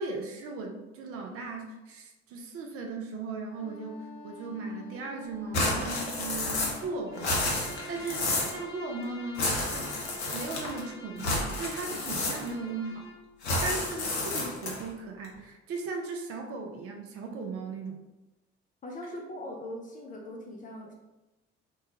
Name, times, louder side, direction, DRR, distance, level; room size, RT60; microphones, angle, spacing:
voice 1, 0.0-7.5 7.9-9.9 10.3-13.1 13.6-18.0, right 3 dB, 45° right, 3 dB, 0.5 m, -37 dB
Wind instrument woodwind instrument, 3.5-8.2, left 1 dB, 50° left, 0.9 m, -49 dB
sound 1, 5.5-6.9 7.1-8.6 9.3-10.8 11.2-12.7 13.4-14.9, left 2 dB, 80° left, 0.6 m, -30 dB
Bowed string instrument, 7.1-13.2, equal, 10° right, 1.0 m, -46 dB
voice 2, 18.8-20.9, left 1 dB, 25° left, 1 dB, 0.5 m, -41 dB
2.2 x 2.2 x 2.8 m, 1.0 s
figure-of-eight pair, 50°, 33 cm